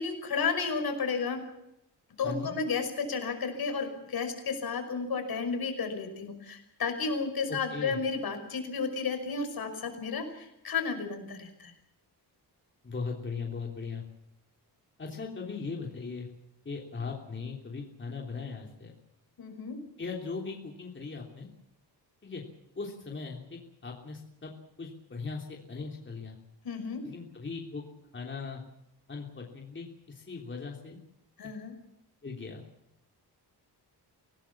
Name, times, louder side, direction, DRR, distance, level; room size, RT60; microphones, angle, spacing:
voice 1, 0.0-1.4 2.2-11.7 19.4-19.8 26.6-27.0 31.4-31.7, left 5 dB, 60° left, 6 dB, 5.6 m, -32 dB
voice 2, 2.2-2.5 7.5-8.0 12.8-14.1 15.0-16.3 16.6-18.9 20.0-21.5 22.2-22.4 22.7-24.5 24.8-26.4 27.0-27.8 28.1-28.6 29.1-31.0 32.2-32.6, left 4 dB, 30° left, 0 dB, 3.3 m, -39 dB
25.0 x 18.0 x 7.3 m, 0.82 s
wide cardioid pair, 145°, 40 cm